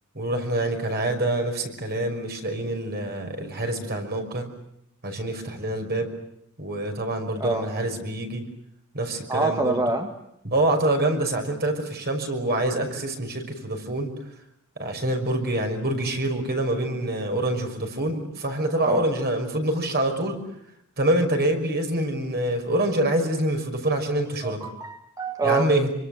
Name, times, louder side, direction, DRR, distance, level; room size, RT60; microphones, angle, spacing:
voice 1, 0.1-4.5 5.0-6.1 6.6-8.5 8.9-9.8 10.4-14.1 14.8-20.4 21.0-24.6 25.4-25.9, right 1 dB, 45° right, 5 dB, 5.9 m, -26 dB
voice 2, 7.4-7.7 9.3-10.1 18.8-19.0 24.4-25.7, right 2 dB, 15° right, 4 dB, 1.8 m, -26 dB
27.0 x 25.0 x 8.0 m, 0.77 s
head